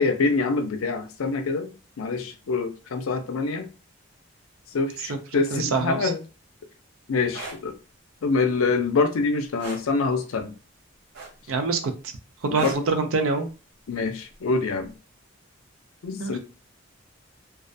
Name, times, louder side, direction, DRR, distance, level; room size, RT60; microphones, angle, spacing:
voice 1, 0.0-3.7 4.7-6.2 7.1-7.7 8.2-10.5 12.5-12.8 13.9-14.9 16.0-16.4, left 4 dB, 85° left, 8 dB, 0.4 m, -25 dB
voice 2, 5.5-6.1 11.5-11.9 12.4-13.5 16.2-16.4, right 4 dB, 80° right, 6 dB, 0.4 m, -25 dB
sound 1, 7.3-7.6 9.6-9.9 11.1-11.6 12.5-12.9 14.3-14.5, right 3 dB, 55° right, 0.8 m, -36 dB
2.3 x 2.1 x 2.6 m, 0.34 s
head